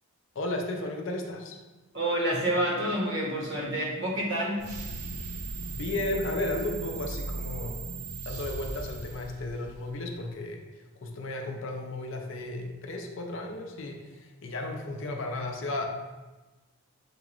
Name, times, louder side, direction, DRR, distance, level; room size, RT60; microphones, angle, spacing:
voice 1, 0.3-1.6 5.7-7.8 8.3-10.6 11.0-15.9, left 2 dB, 55° left, 2 dB, 0.5 m, -34 dB
voice 2, 1.9-4.7, right 1 dB, 55° right, -3 dB, 1.2 m, -28 dB
sound 1, 4.6-10.0, right 3 dB, 75° right, 0.6 m, -37 dB
6.7 x 2.4 x 3.0 m, 1.2 s
head